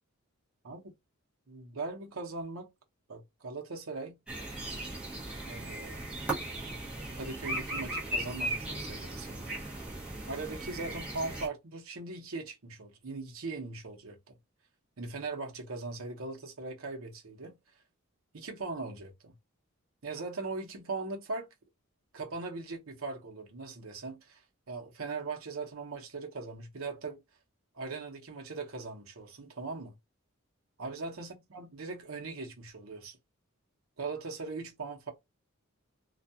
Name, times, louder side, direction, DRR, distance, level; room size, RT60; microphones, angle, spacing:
voice 1, 1.5-2.7 3.1-4.2 5.5-6.1 7.1-9.5 10.3-14.2 15.0-17.6 18.3-19.3 20.0-21.5 22.1-24.4 24.7-27.2 27.7-29.9 30.8-33.2 34.0-35.1, right 3 dB, 75° right, 0.8 m, -40 dB
sound 1, 4.3-11.5, right 1 dB, 5° right, 0.7 m, -37 dB
2.3 x 2.3 x 2.7 m
head